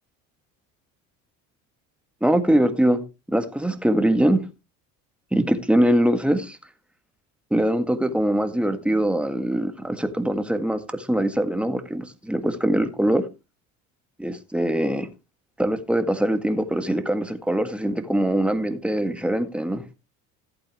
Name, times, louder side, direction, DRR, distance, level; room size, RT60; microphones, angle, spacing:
voice 1, 2.2-3.0 3.3-4.5 5.3-6.6 7.5-13.3 14.2-15.1 15.6-19.8, right 1 dB, 5° right, 1.8 m, -22 dB
14.5 x 8.7 x 3.0 m
hypercardioid pair, 70°, 39 cm